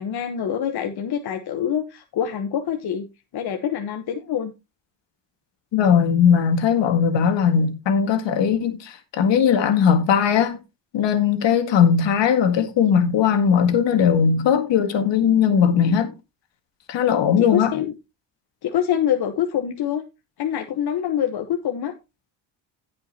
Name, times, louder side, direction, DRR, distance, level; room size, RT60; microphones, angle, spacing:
voice 1, 0.0-3.1 3.3-4.5 17.4-17.9 18.6-20.0 20.4-21.9, left 9 dB, 60° left, 1.2 m, -25 dB
voice 2, 5.7-10.6 10.9-16.1 16.9-17.7, left 7 dB, 75° left, 2.0 m, -19 dB
16.5 x 5.6 x 2.9 m
cardioid pair, 105°, 44 cm